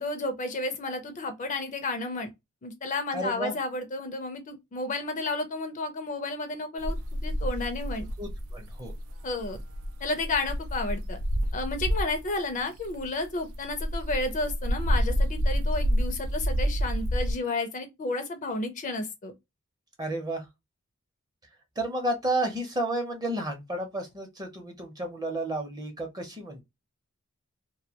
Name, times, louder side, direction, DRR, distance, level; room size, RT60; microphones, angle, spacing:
voice 1, 0.0-2.3 2.6-7.0 7.2-8.1 9.2-9.6 10.0-11.2 11.5-19.3, left 2 dB, 35° left, 0.4 m, -32 dB
voice 2, 3.1-3.5 8.2-8.9 20.0-20.5 21.8-26.6, right 1 dB, 20° right, 0.6 m, -31 dB
sound 1, 6.8-12.3 12.8-17.3, equal, 85° right, 0.4 m, -29 dB
2.2 x 2.1 x 2.7 m
head